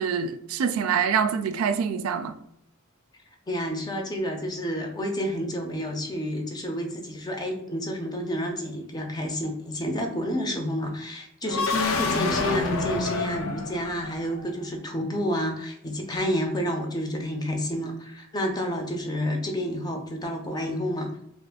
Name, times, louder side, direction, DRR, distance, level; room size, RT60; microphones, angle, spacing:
voice 1, 0.0-2.4, right 6 dB, 85° right, 0.3 m, -25 dB
voice 2, 3.5-21.1, equal, 20° left, 0.5 m, -29 dB
sound 1, 11.4-14.4, left 3 dB, 80° left, 0.5 m, -28 dB
2.5 x 2.4 x 3.5 m
head